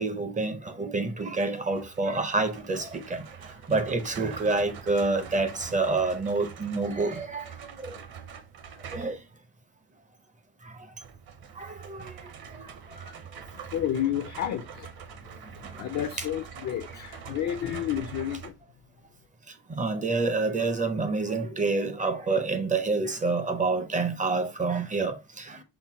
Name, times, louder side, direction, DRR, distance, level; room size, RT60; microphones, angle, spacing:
voice 1, 0.0-3.2 3.7-7.5 7.8-8.0 8.9-9.2 11.6-12.1 19.7-25.6, right 3 dB, 15° right, 0.5 m, -28 dB
sound 1, 1.7-9.3 11.0-18.5, right 7 dB, 45° right, 0.8 m, -44 dB
voice 2, 13.7-14.9 15.7-18.5, left 10 dB, 40° left, 0.4 m, -30 dB
5.8 x 2.1 x 4.1 m
cardioid pair, 135°, 49 cm